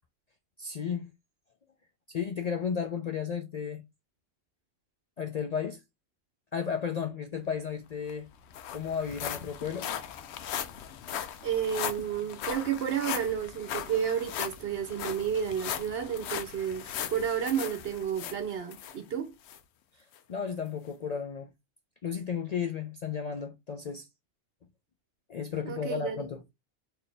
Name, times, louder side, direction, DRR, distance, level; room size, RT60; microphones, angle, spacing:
voice 1, 0.6-1.1 2.1-3.8 5.2-5.8 6.5-8.3 8.7-9.9 19.9-21.5 22.0-24.1 25.3-26.4, left 7 dB, 60° left, 0.4 m, -34 dB
sound 1, 7.7-7.8 8.1-19.0 19.5-19.6 20.1-20.2, left 9 dB, 75° left, 0.8 m, -38 dB
voice 2, 11.4-19.3 25.6-26.2, right 8 dB, 65° right, 0.9 m, -31 dB
4.0 x 2.8 x 3.3 m
omnidirectional pair, 1.2 m